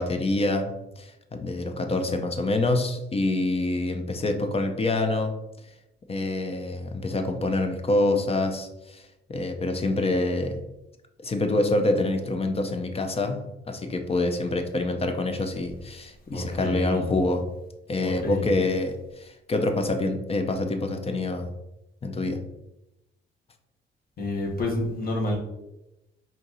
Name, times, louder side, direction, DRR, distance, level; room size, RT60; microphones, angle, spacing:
voice 1, 0.0-5.4 6.1-9.0 9.3-10.6 11.2-17.5 17.9-21.5 22.0-22.4, left 2 dB, 30° left, 0.6 m, -26 dB
voice 2, 16.3-17.1 18.0-18.5 24.2-25.4, left 1 dB, 50° left, 1.4 m, -29 dB
4.5 x 2.7 x 4.0 m
cardioid pair, 90°, 20 cm